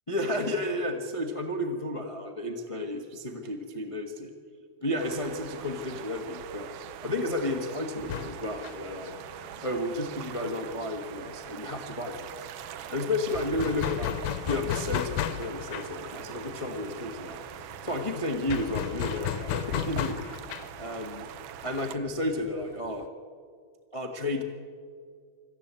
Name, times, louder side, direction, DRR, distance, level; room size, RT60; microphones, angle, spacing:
voice 1, 0.1-4.3 4.8-6.7 7.0-9.1 9.6-12.5 12.9-14.1 14.5-17.4 17.8-20.4 20.8-21.3 21.6-23.0 23.9-24.4, left 1 dB, 60° left, 4 dB, 0.3 m, -32 dB
sound 1, 5.0-22.0, right 10 dB, 80° right, 1.3 m, -43 dB
sound 2, 8.0-11.4 11.7-11.8 12.1-23.1, left 11 dB, 90° left, 2.3 m, -35 dB
25.5 x 14.5 x 8.3 m, 2.1 s
omnidirectional pair, 3.6 m